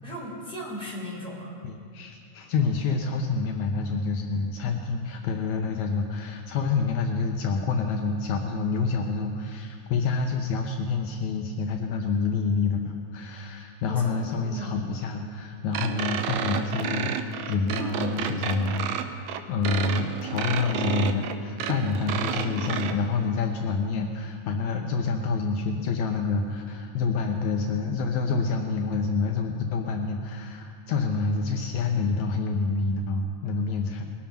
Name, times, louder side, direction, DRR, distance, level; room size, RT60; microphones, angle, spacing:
voice 1, 0.0-1.6 13.9-14.8, equal, ahead, -6 dB, 3.5 m, -37 dB
voice 2, 1.6-34.0, left 4 dB, 75° left, 3 dB, 2.0 m, -27 dB
sound 1, 15.7-22.9, right 8 dB, 75° right, 1.9 m, -31 dB
20.5 x 7.3 x 5.8 m, 2.4 s
omnidirectional pair, 3.5 m